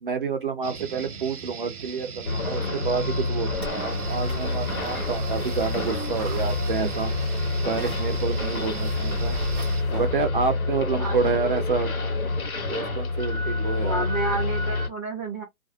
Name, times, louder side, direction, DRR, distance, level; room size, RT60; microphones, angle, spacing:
voice 1, 0.0-7.1 7.6-9.4 9.9-11.9 12.7-14.0, right 5 dB, 35° right, 0.6 m, -28 dB
sound 1, 0.6-9.8, right 6 dB, 75° right, 0.8 m, -39 dB
sound 2, 2.3-14.9, left 3 dB, 70° left, 1.3 m, -28 dB
sound 3, 3.5-10.1, right 5 dB, 5° right, 0.8 m, -37 dB
voice 2, 13.8-15.4, right 3 dB, 15° left, 0.4 m, -30 dB
2.5 x 2.1 x 2.4 m
figure-of-eight pair, 140°, 44 cm